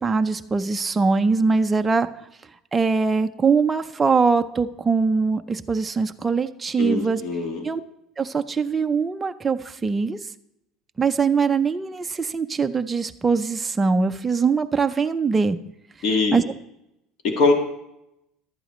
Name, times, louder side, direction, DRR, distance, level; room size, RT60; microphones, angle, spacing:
voice 1, 0.0-2.1 2.7-7.2 7.6-7.8 8.2-10.2 11.0-15.6 16.3-16.4, right 4 dB, 10° right, 7 dB, 0.4 m, -22 dB
voice 2, 6.8-7.7 16.0-16.4 17.2-17.5, left 3 dB, 45° left, 3 dB, 1.6 m, -22 dB
14.0 x 12.0 x 3.1 m, 0.84 s
cardioid pair, 180°, 0 cm